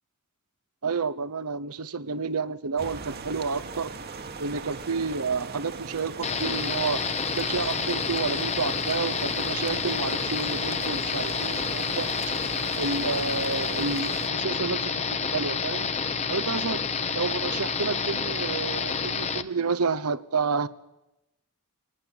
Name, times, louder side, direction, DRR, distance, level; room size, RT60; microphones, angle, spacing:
voice 1, 0.8-3.9 4.4-7.0 7.4-12.1 12.7-15.9 16.3-16.8 17.1-20.7, right 4 dB, 75° right, 14 dB, 0.9 m, -30 dB
sound 1, 2.8-14.3, right 4 dB, 45° right, 1.5 m, -39 dB
sound 2, 6.2-19.4, left 5 dB, 30° left, 1.0 m, -29 dB
23.5 x 18.5 x 9.9 m, 0.95 s
head